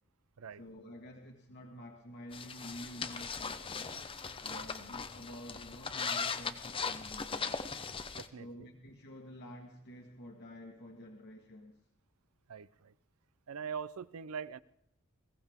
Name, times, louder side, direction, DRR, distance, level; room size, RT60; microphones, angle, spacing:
voice 1, 0.6-4.0 4.4-7.5 8.4-11.8, equal, 50° left, 1 dB, 1.5 m, -49 dB
sound 1, 2.3-8.3, left 5 dB, 25° left, 0.7 m, -39 dB
voice 2, 8.2-8.7 12.5-12.9 13.5-14.6, right 6 dB, 80° right, 17 dB, 0.6 m, -43 dB
21.0 x 16.5 x 3.6 m, 0.75 s
head